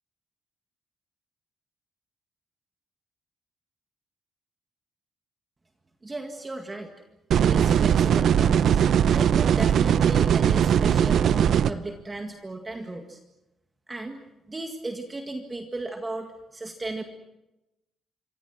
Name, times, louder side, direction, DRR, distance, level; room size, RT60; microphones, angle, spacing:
voice 1, 6.0-6.9 7.3-8.8 9.1-13.2 13.9-14.2 14.5-17.0, right 2 dB, 15° right, 4 dB, 1.9 m, -35 dB
sound 1, 7.3-11.7, right 8 dB, 60° right, 0.8 m, -20 dB
28.0 x 24.5 x 6.1 m, 0.93 s
cardioid pair, 145°, 0 cm